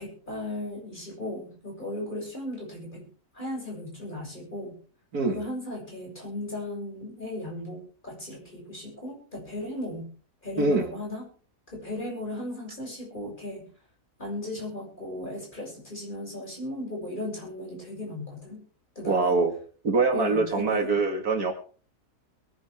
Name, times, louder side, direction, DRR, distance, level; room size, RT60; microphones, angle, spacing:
voice 1, 0.0-3.1 3.3-4.7 5.3-10.1 10.4-11.3 11.7-13.7 14.2-18.6 19.0-19.5 20.1-21.0, left 1 dB, 30° left, -1 dB, 7.2 m, -36 dB
voice 2, 19.0-19.5 19.8-21.5, right 3 dB, 70° right, 5 dB, 2.5 m, -24 dB
22.5 x 11.0 x 3.6 m, 0.41 s
omnidirectional pair, 1.7 m